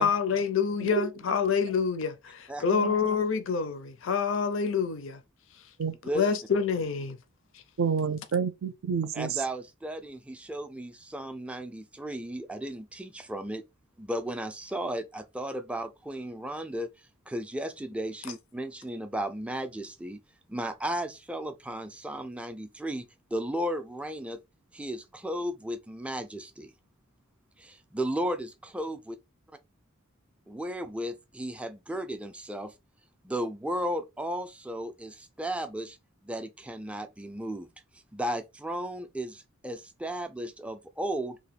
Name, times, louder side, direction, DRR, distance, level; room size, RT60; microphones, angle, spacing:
voice 1, 0.0-5.2 6.1-7.2, left 6 dB, 65° left, 0.5 m, -27 dB
voice 2, 7.8-9.4, right 6 dB, 70° right, 0.5 m, -29 dB
voice 3, 9.1-13.6 14.0-16.9 17.3-20.2 20.5-23.1 23.3-24.4 24.7-26.7 27.6-29.2 30.5-32.7 33.2-36.0 36.2-37.7 38.1-41.4, right 1 dB, 5° right, 0.3 m, -34 dB
2.9 x 2.2 x 4.1 m
head